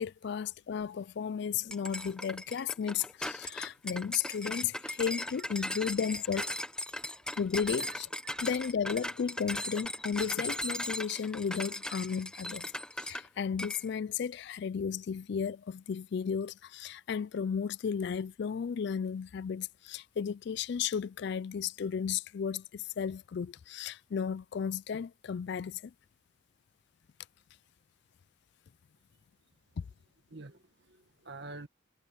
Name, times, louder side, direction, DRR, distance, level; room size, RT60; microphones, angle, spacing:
voice 1, 0.0-6.5 7.4-8.1 8.4-12.7 13.0-25.9 29.8-29.9, left 7 dB, 50° left, 0.3 m, -34 dB
sound 1, 1.7-13.3 13.6-13.9, left 1 dB, 5° left, 0.8 m, -38 dB
voice 2, 30.3-31.7, right 2 dB, 55° right, 1.8 m, -47 dB
head